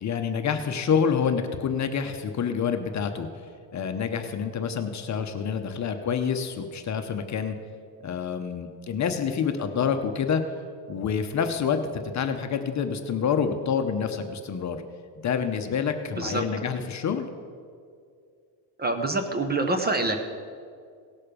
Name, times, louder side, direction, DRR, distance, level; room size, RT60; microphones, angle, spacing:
voice 1, 0.0-3.3 3.7-7.6 8.0-10.4 10.9-14.8 15.2-17.3, left 7 dB, 40° left, 7 dB, 0.8 m, -27 dB
voice 2, 18.8-20.2, right 2 dB, 20° right, 6 dB, 0.8 m, -26 dB
17.5 x 6.5 x 5.1 m, 2.2 s
cardioid pair, 130°, 43 cm